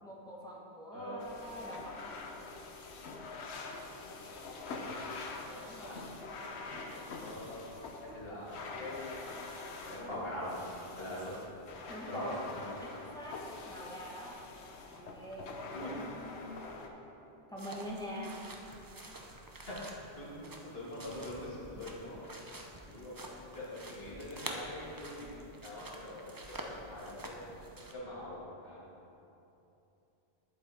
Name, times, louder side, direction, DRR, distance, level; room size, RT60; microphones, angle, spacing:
voice 1, 0.0-1.9 5.6-6.0 11.9-12.4 12.8-13.4 13.6-14.4 14.9-15.5 15.8-16.4 17.5-18.4, equal, 5° left, -5 dB, 1.3 m, -44 dB
voice 2, 0.9-1.3 4.2-5.0 5.5-6.0 7.2-7.7 8.0-9.2 9.8-10.6 11.0-11.4 12.1-12.6 15.7-16.0 19.6-22.2 22.9-23.2 23.5-25.3 25.6-27.6 27.9-28.8, left 1 dB, 65° left, -7 dB, 2.4 m, -43 dB
sound 1, 1.2-16.9, left 3 dB, 90° left, 1.1 m, -45 dB
sound 2, 17.6-27.9, right 1 dB, 25° right, 0.6 m, -48 dB
11.0 x 8.0 x 3.5 m, 2.9 s
omnidirectional pair, 1.1 m